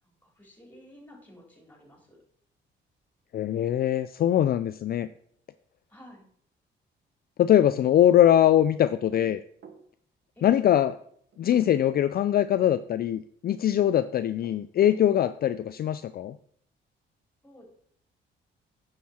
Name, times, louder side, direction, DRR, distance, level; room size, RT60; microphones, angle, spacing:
voice 1, 0.0-2.2 5.9-6.3 10.4-10.6 17.4-17.6, equal, 10° left, 0 dB, 3.6 m, -51 dB
voice 2, 3.3-5.1 7.4-9.4 10.4-10.9 11.4-16.4, left 11 dB, 50° left, 12 dB, 0.4 m, -22 dB
sound 1, 8.9-9.9 11.3-12.1 14.2-15.1, right 6 dB, 60° right, 1.3 m, -50 dB
9.2 x 6.5 x 4.3 m, 0.64 s
cardioid pair, 90°, 20 cm